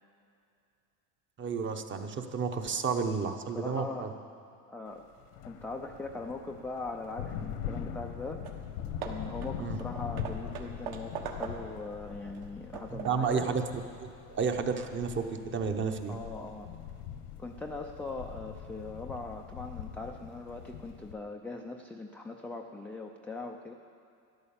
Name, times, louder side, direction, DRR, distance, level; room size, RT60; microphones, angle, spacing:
voice 1, 1.4-4.1 9.6-9.8 12.9-13.6 14.0-16.2, right 5 dB, 25° right, 6 dB, 1.0 m, -31 dB
voice 2, 3.5-4.1 4.7-5.1 5.5-8.4 9.0-13.5 16.1-16.7 17.4-23.7, left 3 dB, 5° left, 0 dB, 0.3 m, -40 dB
sound 1, 5.1-21.2, left 8 dB, 80° left, 1.3 m, -42 dB
Hammer / Wood, 8.1-8.2 8.4-8.7 9.0-11.9 12.3-13.4, right 7 dB, 55° right, 1.5 m, -42 dB
13.0 x 11.0 x 7.2 m, 2.5 s
supercardioid pair, 130°, 44 cm